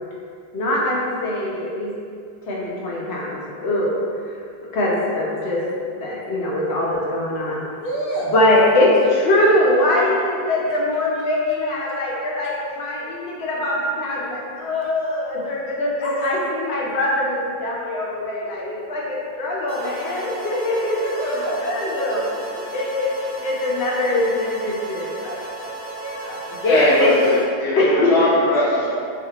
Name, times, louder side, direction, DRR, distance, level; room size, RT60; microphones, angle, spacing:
voice 1, 0.5-1.9 2.5-3.9 4.3-4.4 4.6-5.6 6.0-7.6 8.3-22.2 22.7-25.4 26.6-27.1 27.8-28.1, left 1 dB, 90° left, -4 dB, 0.9 m, -22 dB
voice 2, 4.8-5.5 7.8-8.3 11.5-11.6 16.0-16.4 21.0-22.5 26.0-26.4 26.8-27.1 28.5-28.9, right 1 dB, 60° left, -5 dB, 0.7 m, -29 dB
sound 1, 19.7-27.5, right 2 dB, 75° right, 0.9 m, -34 dB
voice 3, 26.6-28.7, left 1 dB, 5° left, -9 dB, 0.3 m, -19 dB
2.5 x 2.1 x 2.8 m, 2.3 s
omnidirectional pair, 1.1 m